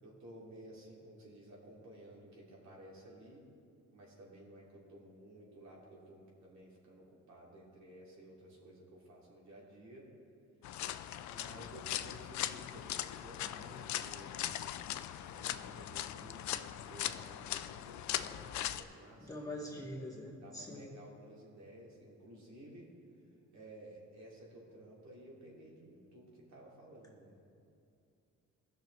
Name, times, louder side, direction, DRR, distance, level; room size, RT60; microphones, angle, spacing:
voice 1, 0.0-3.5 3.9-10.1 11.3-14.7 15.2-19.9 20.3-22.9 23.5-27.4, right 1 dB, 65° right, -4 dB, 2.4 m, -54 dB
sound 1, 10.6-18.8, left 12 dB, 70° left, 0.5 m, -40 dB
voice 2, 19.2-20.9, left 1 dB, 10° left, -5 dB, 1.8 m, -44 dB
16.0 x 6.3 x 3.1 m, 2.5 s
cardioid pair, 90°, 30 cm